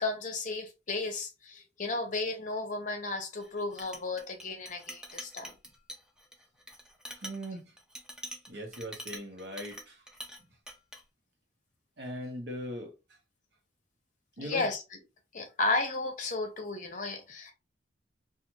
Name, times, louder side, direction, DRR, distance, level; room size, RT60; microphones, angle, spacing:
voice 1, 0.0-5.5 14.4-14.8 15.3-17.5, left 3 dB, 45° left, 0.7 m, -33 dB
Chink clink, 3.4-10.4 10.7-11.0, equal, 5° right, 0.5 m, -45 dB
voice 2, 7.2-7.7 8.5-10.0 12.0-12.9 14.4-14.7, left 1 dB, 65° right, 0.9 m, -39 dB
2.5 x 2.4 x 2.9 m
head